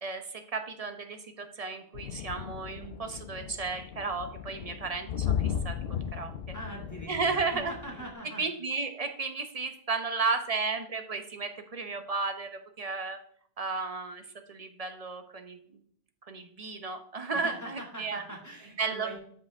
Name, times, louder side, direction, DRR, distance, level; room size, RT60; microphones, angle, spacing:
voice 1, 0.0-5.8 6.1-6.4 7.1-7.7 8.4-13.2 13.6-14.2 14.5-15.6 16.3-18.2 18.8-19.2, right 4 dB, 40° right, 7 dB, 0.8 m, -33 dB
sound 1, 1.9-8.1, left 8 dB, 70° left, 0.8 m, -36 dB
voice 2, 6.5-8.5 17.3-19.2, right 1 dB, 15° left, -2 dB, 2.1 m, -42 dB
13.0 x 4.9 x 3.5 m, 0.64 s
omnidirectional pair, 1.1 m